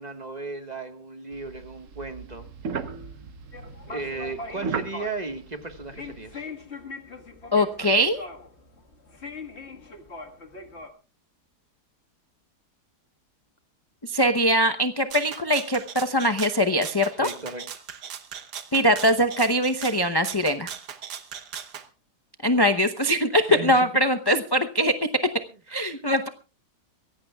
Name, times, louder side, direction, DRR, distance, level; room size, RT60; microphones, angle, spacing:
voice 1, 0.0-2.5 3.9-6.5 17.2-17.8 23.3-24.0 25.7-25.8, right 3 dB, 25° right, 7 dB, 1.5 m, -35 dB
sound 1, 1.3-6.3, right 5 dB, 55° right, 1.3 m, -36 dB
sound 2, 3.5-10.9, left 3 dB, 40° left, 1.9 m, -41 dB
voice 2, 7.5-8.3 14.0-17.3 18.7-20.7 22.4-24.9 25.7-26.3, equal, 25° left, 6 dB, 0.5 m, -22 dB
Rattle (instrument), 15.1-21.9, right 8 dB, 80° right, 1.7 m, -39 dB
23.5 x 16.5 x 2.3 m, 0.32 s
omnidirectional pair, 1.7 m